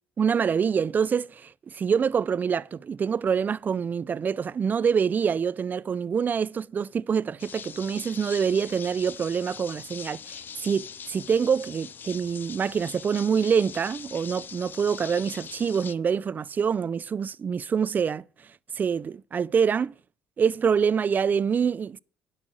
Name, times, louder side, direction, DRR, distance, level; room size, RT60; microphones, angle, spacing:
voice 1, 0.2-18.2 18.8-19.9 20.4-22.0, right 6 dB, 35° right, 0.4 m, -26 dB
sound 1, 7.4-15.9, left 7 dB, 40° left, 0.5 m, -42 dB
10.5 x 6.5 x 7.4 m
supercardioid pair, 75°, 5 cm